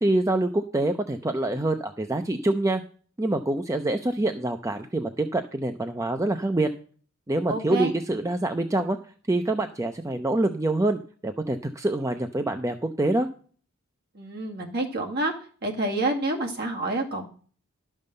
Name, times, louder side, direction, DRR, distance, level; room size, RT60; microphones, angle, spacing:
voice 1, 0.0-2.8 3.2-6.7 7.3-9.0 9.3-13.3, right 2 dB, 15° right, 7 dB, 0.5 m, -26 dB
voice 2, 7.5-7.9 14.1-15.3 15.6-17.2, right 2 dB, 50° right, 0 dB, 2.2 m, -28 dB
11.5 x 5.4 x 6.7 m, 0.43 s
head